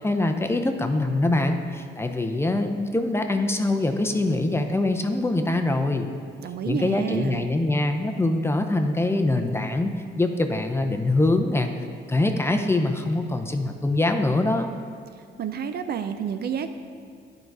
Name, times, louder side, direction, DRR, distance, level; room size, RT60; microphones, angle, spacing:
voice 1, 0.0-6.1 6.6-11.7 12.1-14.7, left 2 dB, 10° left, 5 dB, 0.5 m, -24 dB
voice 2, 6.4-7.5 15.4-16.7, right 8 dB, 55° right, 9 dB, 0.4 m, -29 dB
10.0 x 3.9 x 4.7 m, 2.1 s
cardioid pair, 90°, 20 cm